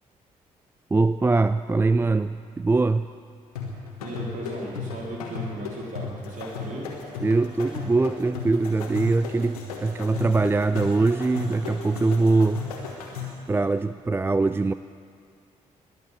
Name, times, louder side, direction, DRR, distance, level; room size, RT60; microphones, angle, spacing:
voice 1, 0.9-3.1 7.2-12.7 13.5-14.7, right 3 dB, 15° right, 13 dB, 0.3 m, -22 dB
sound 1, 3.6-13.5, left 5 dB, 80° left, 1.5 m, -35 dB
voice 2, 4.0-6.9, right 1 dB, 45° right, -2 dB, 3.7 m, -36 dB
20.5 x 7.7 x 7.4 m, 2.3 s
figure-of-eight pair, 40°, 19 cm